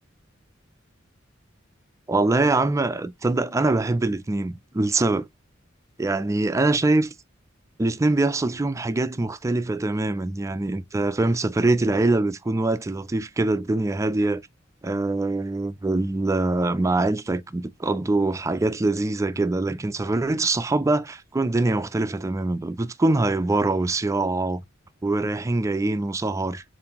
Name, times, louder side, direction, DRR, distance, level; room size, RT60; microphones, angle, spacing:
voice 1, 2.1-5.3 6.0-7.1 7.8-14.4 14.8-24.6 25.0-26.6, right 2 dB, 15° right, 0.3 m, -23 dB
7.0 x 2.6 x 2.9 m
head